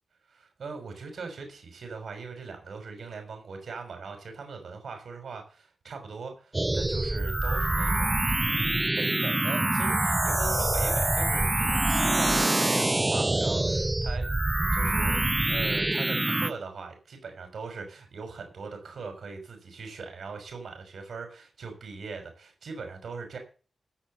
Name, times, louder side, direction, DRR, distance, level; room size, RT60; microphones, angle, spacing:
voice 1, 0.3-8.1 8.4-23.4, right 4 dB, 75° right, 5 dB, 6.1 m, -40 dB
sound 1, 6.5-16.5, right 2 dB, 20° right, 0.6 m, -25 dB
15.0 x 6.8 x 7.1 m, 0.37 s
cardioid pair, 60°, 0 cm